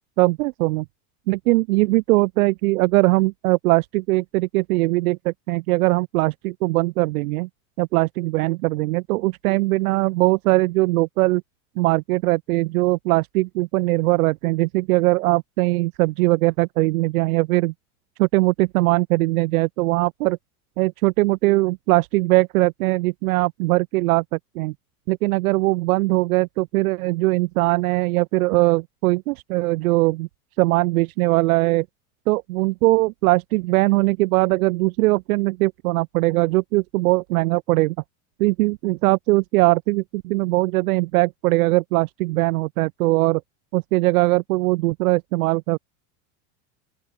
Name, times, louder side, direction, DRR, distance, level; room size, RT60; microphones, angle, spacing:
voice 1, 0.2-0.9 1.3-7.5 7.8-11.4 11.8-17.7 18.2-20.4 20.8-24.7 25.1-30.3 30.6-31.9 32.3-38.0 38.4-43.4 43.7-45.8, right 21 dB, 80° right, 0.8 m, -20 dB
open air
supercardioid pair, 120°, 43 cm